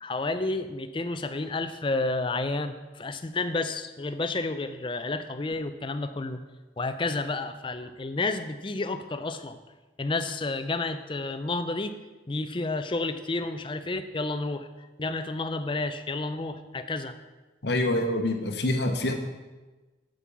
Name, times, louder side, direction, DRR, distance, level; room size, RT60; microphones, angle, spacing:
voice 1, 0.0-6.4 6.8-9.6 10.0-12.0 12.3-14.7 15.0-17.2, left 2 dB, 25° left, 9 dB, 0.5 m, -30 dB
voice 2, 17.6-19.1, left 1 dB, 60° left, 5 dB, 1.1 m, -26 dB
8.5 x 5.4 x 7.2 m, 1.2 s
head